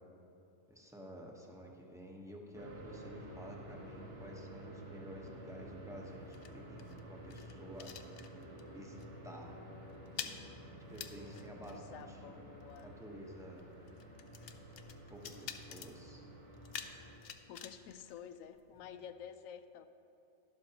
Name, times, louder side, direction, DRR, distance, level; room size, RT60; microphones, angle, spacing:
voice 1, 0.7-7.9 8.7-9.0 9.2-9.5 10.2-10.3 10.9-12.2 12.8-13.6 15.1-16.2 18.8-18.9, equal, 5° right, -1 dB, 0.9 m, -51 dB
sound 1, 2.5-17.2, right 1 dB, 65° right, 1.7 m, -51 dB
sound 2, 5.5-8.7 9.0-9.3 9.5-18.9, left 8 dB, 60° left, 0.7 m, -50 dB
voice 2, 11.7-12.9 17.5-19.9, left 8 dB, 85° left, 11 dB, 1.0 m, -50 dB
12.0 x 11.5 x 2.9 m, 2.6 s
omnidirectional pair, 1.4 m